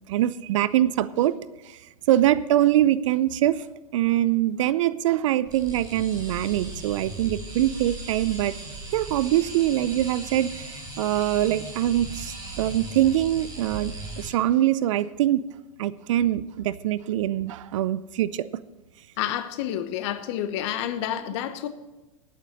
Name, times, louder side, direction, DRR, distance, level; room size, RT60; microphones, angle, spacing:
voice 1, 0.1-1.4 1.7-1.8 2.1-3.6 3.9-8.5 8.9-15.4 15.8-18.5, right 13 dB, 60° right, 0.5 m, -23 dB
sound 1, 5.4-14.3, right 2 dB, 20° right, 4.2 m, -38 dB
voice 2, 19.2-21.7, left 11 dB, 55° left, 1.1 m, -29 dB
10.5 x 8.8 x 6.5 m
hypercardioid pair, 100°, 18 cm